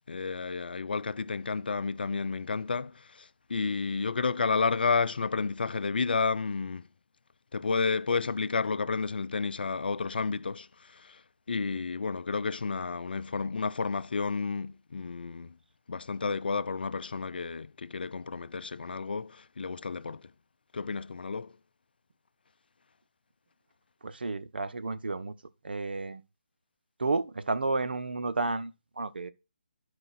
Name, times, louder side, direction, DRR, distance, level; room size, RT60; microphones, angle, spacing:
voice 1, 0.1-6.8 7.5-10.7 10.9-11.2 11.5-15.5 15.9-20.2 20.7-21.5, left 4 dB, 75° left, 0.5 m, -31 dB
voice 2, 24.0-25.3 25.6-26.2 27.0-29.3, right 3 dB, 80° right, 0.8 m, -31 dB
12.0 x 4.9 x 4.1 m
hypercardioid pair, 160°, 5 cm